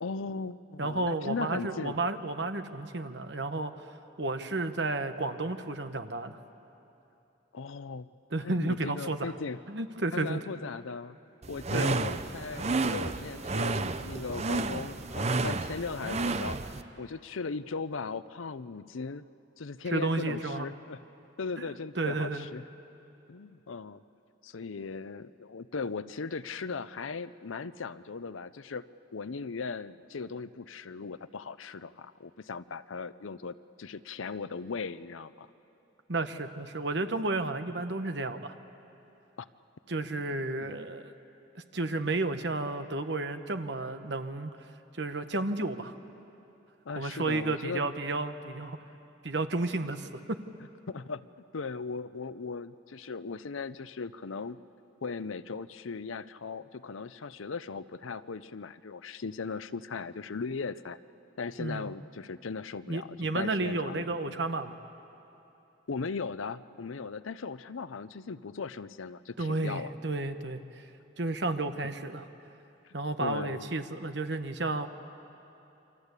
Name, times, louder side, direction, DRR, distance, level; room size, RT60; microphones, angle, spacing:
voice 1, 0.0-2.0 7.5-8.1 8.4-9.6 10.1-11.2 11.5-19.3 19.6-21.0 21.4-22.6 23.3-24.0 24.4-28.8 29.1-35.5 39.4-39.5 40.1-40.2 40.6-40.8 46.9-47.8 50.9-51.3 51.5-54.6 55.0-61.0 61.4-64.4 65.9-69.9 72.8-72.9 73.2-73.6, left 4 dB, 85° left, 13 dB, 0.7 m, -38 dB
voice 2, 0.8-3.7 4.2-6.4 8.3-9.3 9.7-10.4 11.7-11.9 19.9-20.7 21.6-22.5 36.1-38.5 39.9-41.1 41.7-44.5 44.9-46.0 47.0-48.8 49.2-50.4 61.6-61.9 62.9-64.8 69.4-70.8 71.2-72.3 72.9-74.9, right 2 dB, 60° right, 8 dB, 1.2 m, -32 dB
sound 1, 11.4-16.8, right 3 dB, 35° right, 0.7 m, -31 dB
28.5 x 24.0 x 8.3 m, 3.0 s
head